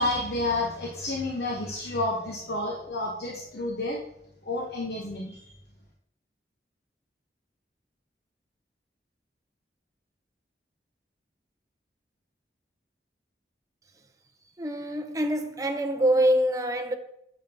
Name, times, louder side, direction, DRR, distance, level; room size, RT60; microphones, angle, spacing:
voice 1, 0.0-4.0 4.4-5.4, left 2 dB, 70° left, 1.1 m, -30 dB
voice 2, 14.6-16.9, right 1 dB, 20° right, 0.7 m, -25 dB
8.9 x 7.5 x 2.9 m
head